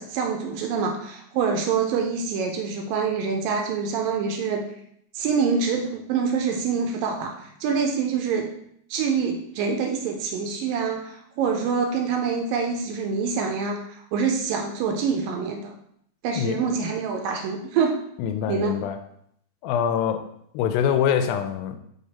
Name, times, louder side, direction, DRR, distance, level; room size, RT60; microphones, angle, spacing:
voice 1, 0.0-4.7 5.1-8.5 8.9-15.7 16.2-18.0 18.5-18.8, right 5 dB, 80° right, 3 dB, 2.2 m, -26 dB
voice 2, 16.3-16.6 18.2-19.0 19.6-20.3 20.5-21.8, left 8 dB, 85° left, 8 dB, 2.3 m, -24 dB
5.0 x 5.0 x 4.1 m, 0.71 s
omnidirectional pair, 4.2 m